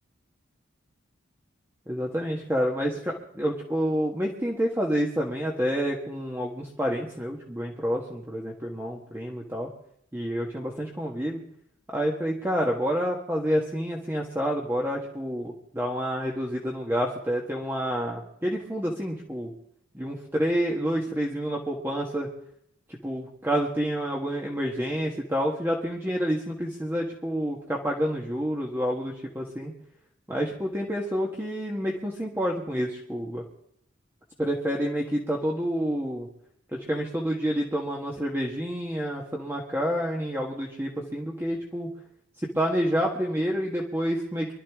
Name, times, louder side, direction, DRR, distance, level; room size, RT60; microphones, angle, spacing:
voice 1, 1.9-9.7 10.1-11.4 11.9-19.5 19.9-22.3 22.9-29.7 30.3-33.4 34.4-36.3 36.7-41.9 42.5-44.5, equal, 10° right, -1 dB, 1.5 m, -28 dB
24.5 x 13.0 x 3.6 m, 0.73 s
head